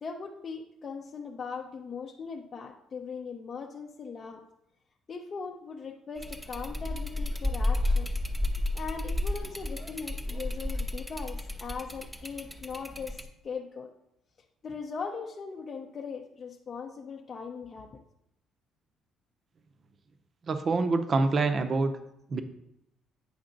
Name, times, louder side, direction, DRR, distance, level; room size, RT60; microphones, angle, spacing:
voice 1, 0.0-4.4 5.1-8.2 8.7-13.9 14.6-18.0, left 5 dB, 35° left, 1 dB, 0.6 m, -39 dB
sound 1, 6.2-13.2, left 1 dB, 5° right, 0.7 m, -32 dB
voice 2, 20.5-21.9 22.3-22.4, right 3 dB, 40° right, 8 dB, 0.6 m, -26 dB
8.6 x 5.5 x 3.9 m, 0.82 s
cardioid pair, 125°, 0 cm